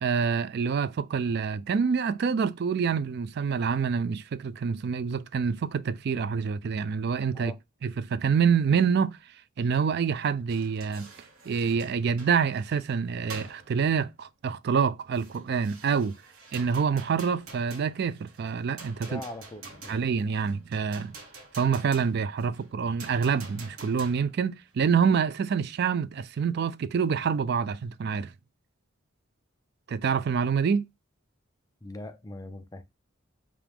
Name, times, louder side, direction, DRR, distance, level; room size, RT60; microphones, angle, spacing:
voice 1, 0.0-7.5 7.8-9.2 9.6-11.1 11.5-16.1 16.5-19.2 19.9-21.1 21.6-28.3 29.9-30.8, right 6 dB, 50° right, 0.3 m, -26 dB
sound 1, 10.5-13.0 13.3-13.9 15.1-24.4, right 3 dB, 85° right, 1.2 m, -48 dB
voice 2, 19.1-20.0 31.8-32.8, left 2 dB, 15° left, 0.4 m, -41 dB
4.8 x 2.4 x 3.4 m
head